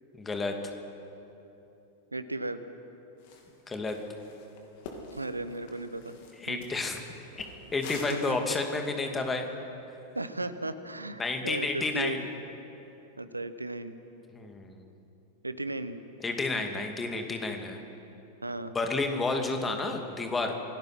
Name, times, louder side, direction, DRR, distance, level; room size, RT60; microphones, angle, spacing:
voice 1, 0.2-0.5 3.7-4.0 6.4-7.0 7.7-9.5 11.2-12.2 14.3-14.9 16.2-17.8 18.7-20.5, left 3 dB, 15° left, 4 dB, 2.4 m, -31 dB
voice 2, 2.1-2.6 5.1-6.2 6.5-6.6 8.1-8.4 10.1-12.2 13.2-14.0 15.4-16.0 18.4-18.7, right 2 dB, 85° right, 12 dB, 1.0 m, -35 dB
sound 1, 3.2-3.5 3.8-8.4, left 4 dB, 50° left, 3.3 m, -46 dB
27.0 x 17.5 x 6.1 m, 3.0 s
figure-of-eight pair, 90°, 0 cm